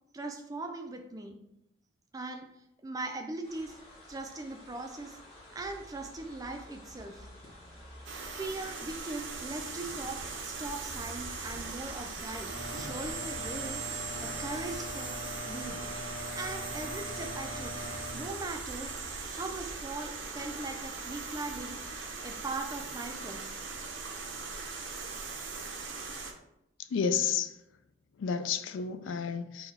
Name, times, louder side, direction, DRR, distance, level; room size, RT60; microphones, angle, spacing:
voice 1, 0.1-1.4 2.1-2.5 2.8-3.8 4.1-5.2 5.5-7.3 8.3-13.8 14.2-15.8 16.4-17.8 18.1-19.0 19.3-23.6, right 2 dB, 20° right, 4 dB, 0.3 m, -40 dB
sound 1, 3.4-22.1, equal, 30° left, 1.1 m, -50 dB
sound 2, 8.1-26.3, right 4 dB, 65° right, 0.6 m, -40 dB
sound 3, 12.5-18.1, left 1 dB, 45° left, 1.3 m, -42 dB
voice 2, 26.9-27.6 28.2-29.7, left 6 dB, 65° left, 9 dB, 0.3 m, -31 dB
3.9 x 2.2 x 4.0 m, 0.83 s
head